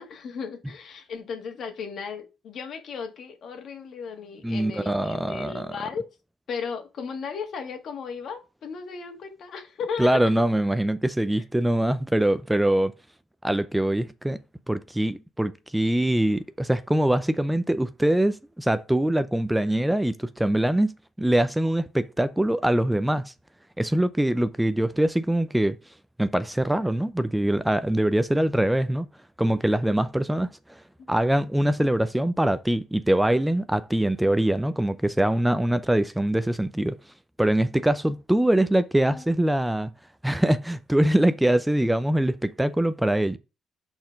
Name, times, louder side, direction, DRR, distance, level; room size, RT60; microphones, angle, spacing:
voice 1, 0.0-6.1 6.5-10.2 31.0-31.1 39.0-39.3, left 6 dB, 65° left, 1.7 m, -35 dB
voice 2, 4.4-5.7 10.0-12.9 13.4-14.4 14.7-20.9 21.2-23.3 23.8-25.8 26.2-29.1 29.4-30.5 31.1-37.0 37.4-39.9 40.2-43.4, right 1 dB, 5° right, 0.5 m, -23 dB
5.9 x 4.4 x 5.1 m
cardioid pair, 90°, 0 cm